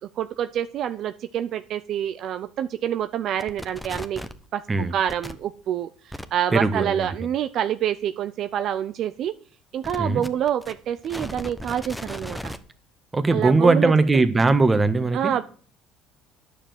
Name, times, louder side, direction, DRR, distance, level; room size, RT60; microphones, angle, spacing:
voice 1, 0.2-4.2 4.5-9.3 9.7-12.5 13.3-13.9 15.1-15.4, right 10 dB, 60° right, 11 dB, 0.6 m, -27 dB
sound 1, 3.4-4.4 5.1-5.3 6.1-6.2 9.8-12.6, equal, 5° left, 1.1 m, -36 dB
voice 2, 6.5-7.1 10.0-10.2 13.1-15.3, right 3 dB, 20° right, 11 dB, 1.5 m, -20 dB
9.8 x 7.1 x 7.8 m, 0.44 s
supercardioid pair, 75°, 0 cm